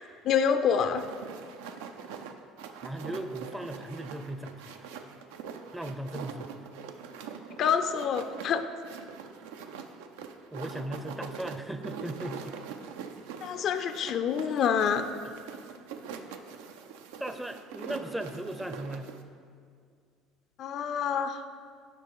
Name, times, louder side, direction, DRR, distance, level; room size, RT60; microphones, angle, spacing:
voice 1, 0.2-1.0 7.6-8.6 13.4-15.1 20.6-21.4, left 7 dB, 55° left, 9 dB, 0.4 m, -27 dB
sound 1, 0.9-19.2, right 6 dB, 85° right, 0.4 m, -43 dB
voice 2, 2.8-4.7 5.7-6.7 10.5-12.6 17.2-19.1, right 1 dB, 10° right, 9 dB, 0.5 m, -37 dB
7.8 x 5.0 x 4.6 m, 2.1 s
supercardioid pair, 85°, 0 cm